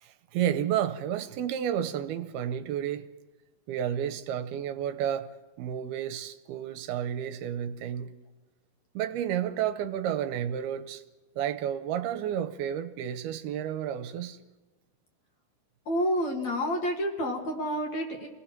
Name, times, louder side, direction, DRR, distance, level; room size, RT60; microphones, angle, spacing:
voice 1, 0.0-3.1 3.7-8.1 9.0-11.0 11.4-14.4, right 10 dB, 75° right, 10 dB, 2.6 m, -31 dB
voice 2, 15.9-18.3, equal, 55° left, 2 dB, 2.4 m, -29 dB
28.5 x 17.5 x 5.9 m, 1.2 s
omnidirectional pair, 4.7 m